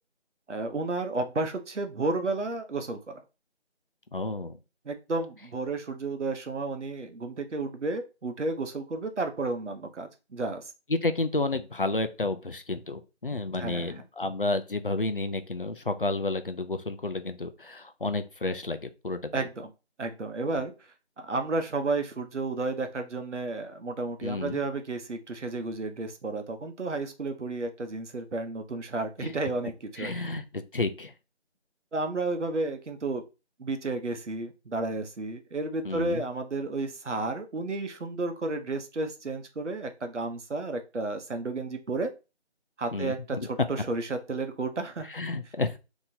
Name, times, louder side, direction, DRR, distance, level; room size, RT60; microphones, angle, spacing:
voice 1, 0.5-3.2 4.8-10.7 13.5-13.9 19.3-19.7 20.0-20.7 21.2-30.1 31.9-33.2 33.6-42.1 42.8-45.1, right 3 dB, 80° right, 7 dB, 0.8 m, -32 dB
voice 2, 4.1-4.6 10.9-19.3 24.2-24.6 29.2-29.3 30.0-31.1 35.8-36.2 42.9-43.5 45.1-45.8, left 2 dB, 50° left, 9 dB, 0.4 m, -31 dB
3.9 x 2.9 x 2.7 m, 0.29 s
figure-of-eight pair, 170°, 35 cm